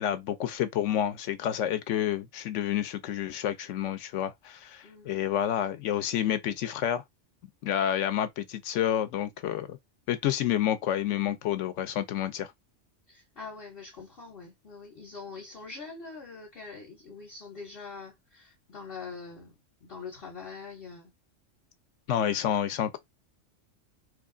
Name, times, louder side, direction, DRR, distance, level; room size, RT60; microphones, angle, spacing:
voice 1, 0.0-7.0 7.6-9.8 10.1-12.5 22.1-23.0, left 10 dB, 80° left, 0.9 m, -29 dB
voice 2, 13.1-19.5 19.8-21.1, left 4 dB, 55° left, 1.0 m, -44 dB
3.2 x 2.4 x 3.6 m
omnidirectional pair, 1.3 m